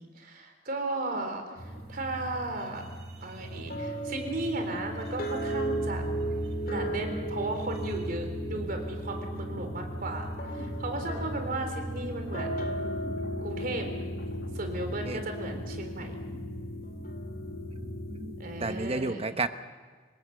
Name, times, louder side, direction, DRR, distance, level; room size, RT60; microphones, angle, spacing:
voice 1, 0.0-2.9 3.2-6.0 6.6-12.9 13.4-13.9 14.5-16.2 18.4-19.2, right 2 dB, 50° right, 5 dB, 3.7 m, -35 dB
sound 1, 0.9-17.0 17.4-17.7, right 1 dB, 65° right, 1.9 m, -52 dB
sound 2, 1.6-18.9, right 1 dB, 55° left, 2.8 m, -35 dB
sound 3, 9.6-12.8 13.1-14.9, left 1 dB, 75° left, 2.3 m, -53 dB
voice 2, 15.0-15.7 18.1-19.5, right 3 dB, 35° right, 10 dB, 1.0 m, -33 dB
27.0 x 17.5 x 6.7 m, 1.5 s
head